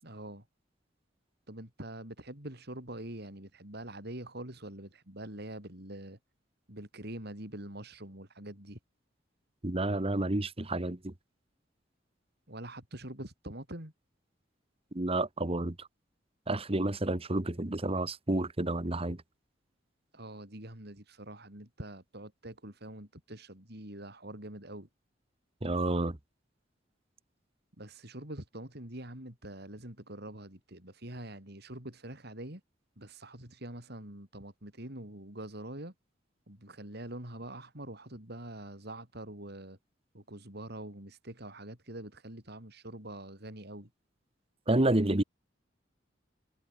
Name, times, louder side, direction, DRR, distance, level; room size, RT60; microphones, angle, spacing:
voice 1, 0.0-0.4 1.5-6.2 6.7-8.8 12.5-13.9 20.1-24.9 27.8-32.6 33.0-35.9 36.5-39.8 40.1-43.9, right 1 dB, 60° right, 6.6 m, -44 dB
voice 2, 9.6-11.1 14.9-15.9 16.5-19.2 25.6-26.2 44.7-45.2, right 2 dB, 30° right, 1.4 m, -30 dB
head